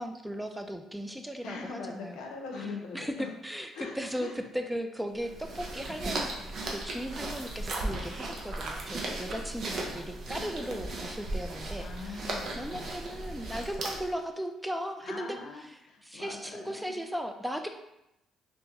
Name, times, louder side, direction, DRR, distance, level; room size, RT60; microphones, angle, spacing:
voice 1, 0.0-2.2 2.9-6.3 6.7-12.2 12.6-17.7, equal, 5° right, 5 dB, 0.3 m, -37 dB
voice 2, 1.4-3.3 3.7-4.4 9.8-10.5 11.8-12.9 15.0-17.0, left 4 dB, 80° left, 1 dB, 0.5 m, -42 dB
sound 1, 5.2-14.2, right 2 dB, 60° right, 0.6 m, -36 dB
2.9 x 2.2 x 2.8 m, 0.85 s
supercardioid pair, 55°, 0 cm